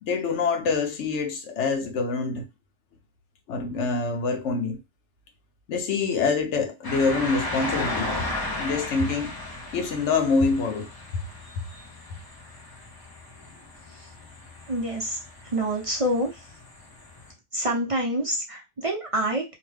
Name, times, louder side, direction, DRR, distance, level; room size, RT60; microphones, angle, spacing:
voice 1, 0.0-2.4 3.5-4.8 5.7-8.1 8.6-9.3 9.7-10.9 11.5-11.6, left 4 dB, 85° left, 1.0 m, -25 dB
sound 1, 6.8-17.3, left 2 dB, 25° left, 0.6 m, -35 dB
voice 2, 14.7-15.2 15.4-16.4 17.5-19.5, right 1 dB, 40° right, 0.6 m, -27 dB
2.8 x 2.2 x 3.2 m
omnidirectional pair, 1.2 m